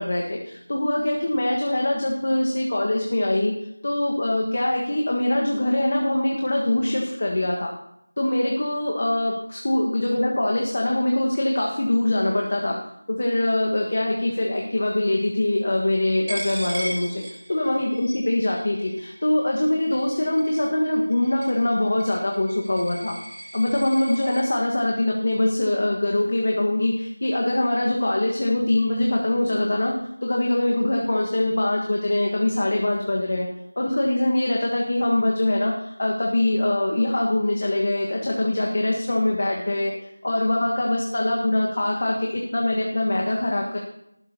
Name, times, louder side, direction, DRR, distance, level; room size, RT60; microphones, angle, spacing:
voice 1, 0.0-3.5 3.8-7.7 8.2-12.7 13.1-23.1 23.5-29.9 30.2-33.5 33.8-43.8, left 1 dB, 35° left, -1 dB, 1.4 m, -23 dB
Coin (dropping), 16.3-24.4, right 1 dB, 20° right, 3.3 m, -38 dB
18.5 x 15.0 x 2.8 m, 0.78 s
figure-of-eight pair, 180°, 0 cm